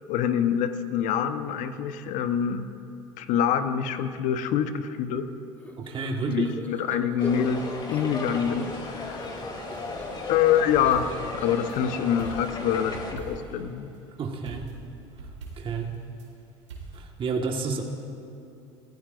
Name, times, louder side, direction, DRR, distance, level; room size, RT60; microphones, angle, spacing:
voice 1, 0.1-2.7 3.2-5.3 6.3-9.4 10.3-13.9, left 8 dB, 60° left, 10 dB, 0.9 m, -26 dB
sound 1, 5.6-9.1 9.4-13.8, left 1 dB, 10° left, 1.6 m, -42 dB
voice 2, 5.8-6.5 14.2-14.7 15.2-15.3 15.6-15.9 16.9-17.8, right 4 dB, 35° right, 1 dB, 1.5 m, -30 dB
sound 2, 7.2-13.1, left 2 dB, 30° left, 2.9 m, -36 dB
sound 3, 10.6-11.8 12.2-13.6 14.4-16.3 16.7-17.0, right 4 dB, 85° right, 2.3 m, -42 dB
23.5 x 16.0 x 2.5 m, 2.6 s
hypercardioid pair, 75°, 15 cm